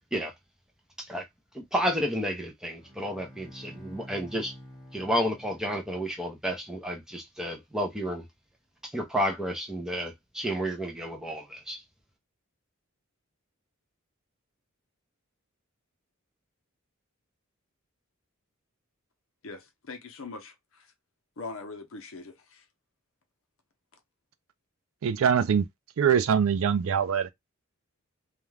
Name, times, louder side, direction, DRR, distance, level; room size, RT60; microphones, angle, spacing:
voice 1, 1.5-4.5 4.9-8.2 8.8-11.8, equal, 5° right, 0.6 m, -31 dB
Bowed string instrument, 2.8-6.3, equal, 15° left, 1.3 m, -48 dB
voice 2, 19.4-20.9 21.4-22.7 23.9-24.0, left 3 dB, 65° left, 0.7 m, -42 dB
voice 3, 25.0-25.7 26.0-27.3, right 7 dB, 65° right, 0.4 m, -23 dB
2.4 x 2.2 x 3.2 m
head